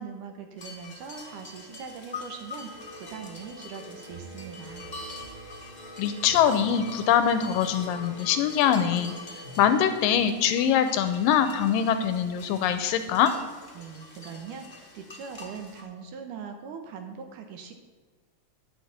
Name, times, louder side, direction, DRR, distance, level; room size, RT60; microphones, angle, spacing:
voice 1, 0.0-4.9 13.7-17.7, right 6 dB, 70° right, 5 dB, 2.3 m, -41 dB
sound 1, 0.6-15.8, left 3 dB, 40° left, 0.5 m, -45 dB
sound 2, 2.6-10.3, right 2 dB, 20° right, 1.7 m, -46 dB
voice 2, 6.0-9.1 9.6-13.3, left 9 dB, 80° left, 10 dB, 2.2 m, -23 dB
10.5 x 5.9 x 8.0 m, 1.4 s
omnidirectional pair, 4.2 m